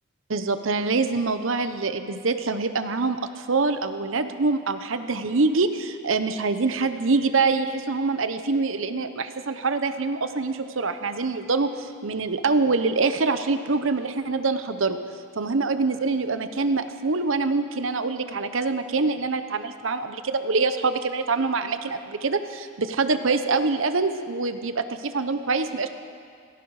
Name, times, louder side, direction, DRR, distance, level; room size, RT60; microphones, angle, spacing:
voice 1, 0.3-15.0 15.4-25.9, right 3 dB, 75° right, 10 dB, 0.9 m, -25 dB
17.0 x 17.0 x 4.9 m, 2.3 s
head